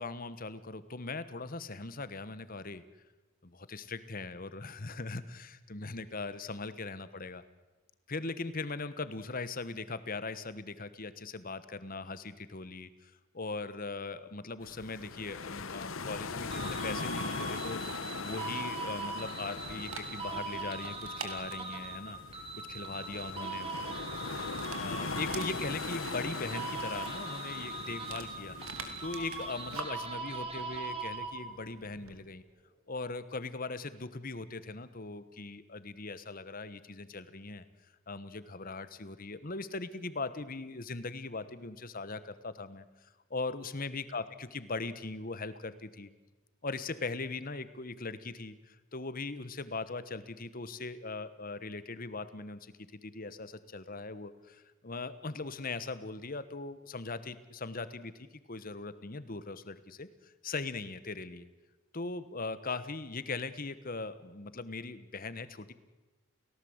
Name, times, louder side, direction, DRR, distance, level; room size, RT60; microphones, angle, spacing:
voice 1, 0.0-2.8 3.4-7.4 8.1-22.2 22.7-23.7 24.7-32.4 32.9-37.6 38.1-46.1 46.6-61.5 61.9-65.7, left 3 dB, 40° left, 14 dB, 1.2 m, -40 dB
sound 1, 14.6-29.7, left 4 dB, 70° left, 1.1 m, -41 dB
sound 2, 16.5-31.7, right 3 dB, 30° right, 3.4 m, -41 dB
Dog, 19.3-32.2, right 5 dB, 90° right, 2.9 m, -49 dB
30.0 x 17.5 x 8.0 m, 1.2 s
head